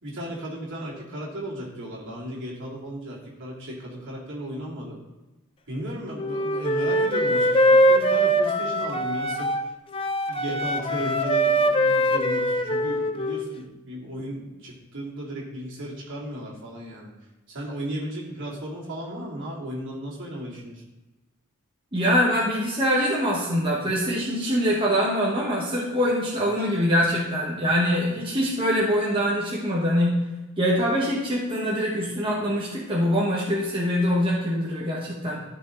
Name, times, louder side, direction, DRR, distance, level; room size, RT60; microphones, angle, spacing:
voice 1, 0.0-5.0 5.7-9.6 10.3-17.1 17.5-20.8, right 1 dB, 60° right, -4 dB, 2.8 m, -35 dB
Wind instrument woodwind instrument, 6.2-9.6 9.9-13.5, equal, 25° left, 0.5 m, -22 dB
voice 2, 21.9-30.2 30.6-35.4, equal, 25° right, -4 dB, 1.2 m, -24 dB
13.0 x 4.6 x 3.9 m, 1.1 s
head